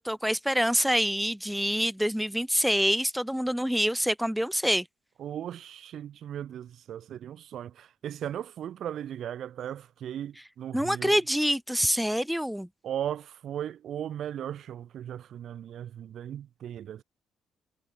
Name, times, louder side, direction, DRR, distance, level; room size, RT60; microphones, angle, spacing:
voice 1, 0.0-4.8 10.7-12.7, equal, ahead, 0.3 m, -26 dB
voice 2, 5.2-11.2 12.8-17.0, right 10 dB, 55° right, 0.5 m, -37 dB
figure-of-eight pair, 40°, 0 cm